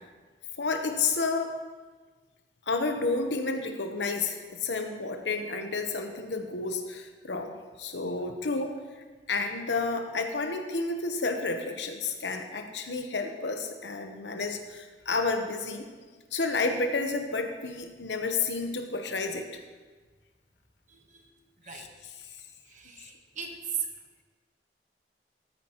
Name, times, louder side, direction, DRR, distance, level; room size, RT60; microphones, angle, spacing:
voice 1, 0.6-1.6 2.7-7.5 7.8-8.8 9.3-15.9 16.3-19.5 21.7-21.8, left 3 dB, 85° left, 6 dB, 1.0 m, -30 dB
voice 2, 20.9-21.3 21.6-21.9 22.7-23.9, right 7 dB, 45° right, 3 dB, 1.2 m, -37 dB
13.5 x 9.8 x 3.0 m, 1.4 s
head